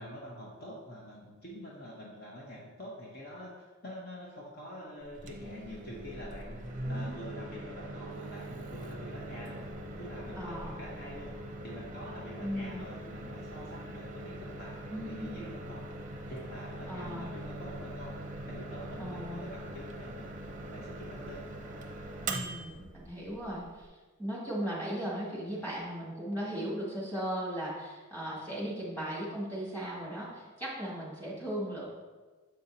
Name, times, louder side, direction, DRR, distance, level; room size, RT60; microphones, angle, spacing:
voice 1, 0.0-6.6 6.9-9.6 10.0-11.4 11.6-15.9 16.3-18.2 18.5-21.5, equal, 45° left, -3 dB, 0.8 m, -46 dB
Microwave oven, 5.0-23.9, right 1 dB, 35° right, 0.6 m, -42 dB
voice 2, 6.9-7.2 10.4-10.8 12.4-12.9 14.9-15.4 16.9-17.3 19.0-19.5 22.2-31.8, equal, 10° left, -7 dB, 2.1 m, -37 dB
7.6 x 5.5 x 2.8 m, 1.3 s
head